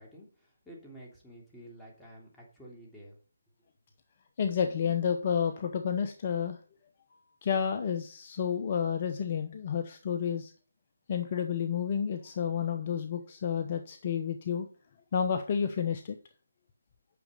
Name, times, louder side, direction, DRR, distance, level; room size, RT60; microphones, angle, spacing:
voice 1, 0.0-3.2, right 1 dB, 5° left, -4 dB, 3.1 m, -51 dB
voice 2, 4.4-6.6 7.4-10.5 11.1-14.7 15.1-16.2, left 7 dB, 35° left, 7 dB, 0.9 m, -30 dB
9.4 x 6.4 x 5.5 m, 0.43 s
figure-of-eight pair, 155°, 0 cm